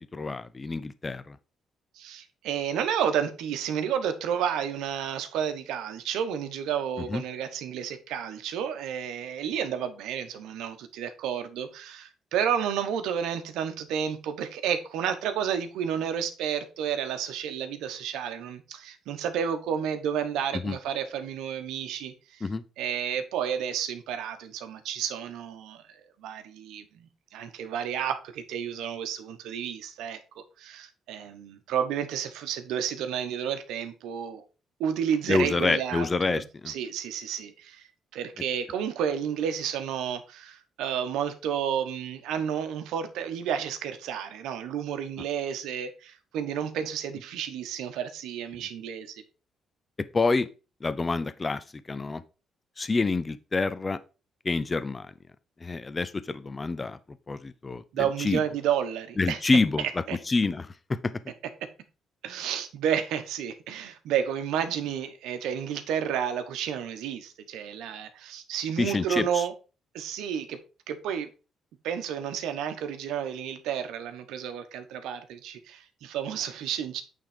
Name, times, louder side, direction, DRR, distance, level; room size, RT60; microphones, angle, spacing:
voice 1, 0.0-1.4 7.1-7.2 20.6-20.8 22.4-22.6 35.3-36.7 50.1-50.5 50.8-52.2 52.8-54.0 54.4-55.1 55.6-57.0 57.3-58.4 59.2-61.1 68.8-69.4, left 3 dB, 25° left, 0.5 m, -27 dB
voice 2, 1.9-22.4 22.8-25.8 26.2-34.4 34.8-37.8 38.1-49.2 57.9-59.4 60.1-60.2 61.6-61.7 62.2-69.5 69.9-70.6 70.9-71.3 71.8-77.0, right 8 dB, 90° right, 1.1 m, -31 dB
8.7 x 3.8 x 5.0 m
cardioid pair, 90°, 0 cm